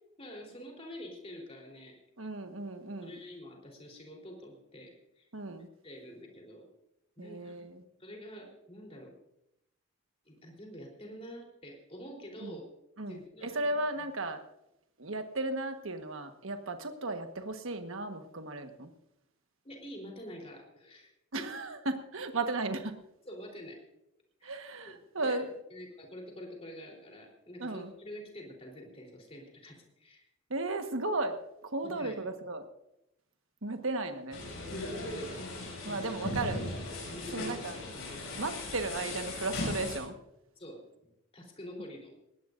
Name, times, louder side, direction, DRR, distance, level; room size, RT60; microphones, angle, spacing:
voice 1, 0.2-2.0 3.0-5.3 5.8-6.7 7.2-7.5 8.0-9.1 10.3-12.6 13.1-13.6 19.6-21.1 21.4-21.6 23.3-23.8 24.4-25.4 25.7-30.3 31.8-32.2 34.7-35.4 35.8-36.1 37.1-37.6 38.1-38.4 40.6-42.1, equal, 30° left, 0 dB, 3.6 m, -47 dB
voice 2, 2.2-3.2 5.3-5.7 7.2-7.8 12.4-12.6 13.0-14.4 15.0-18.9 21.3-23.0 24.4-25.6 27.6-27.9 30.5-32.6 33.6-34.4 35.8-36.6 37.3-37.7 38.4-40.1, right 2 dB, 75° right, 6 dB, 1.4 m, -35 dB
sound 1, 34.3-40.0, left 2 dB, 80° left, 7.3 m, -38 dB
20.5 x 17.5 x 2.6 m, 0.84 s
head